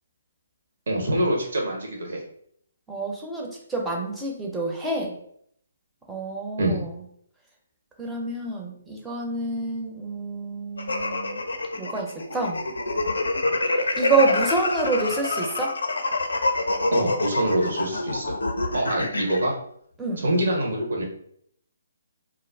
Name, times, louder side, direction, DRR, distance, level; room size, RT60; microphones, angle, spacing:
voice 1, 0.9-2.2 6.6-6.8 16.9-18.3 18.7-19.6 20.2-21.0, right 1 dB, 60° right, -1 dB, 0.8 m, -25 dB
voice 2, 2.9-5.2 6.1-6.9 8.0-11.5 11.8-12.6 14.0-15.8 20.0-20.2, right 2 dB, 5° right, -1 dB, 0.6 m, -27 dB
sound 1, 10.8-19.4, left 2 dB, 70° left, 0.4 m, -26 dB
2.3 x 2.0 x 3.3 m, 0.67 s
figure-of-eight pair, 135°, 0 cm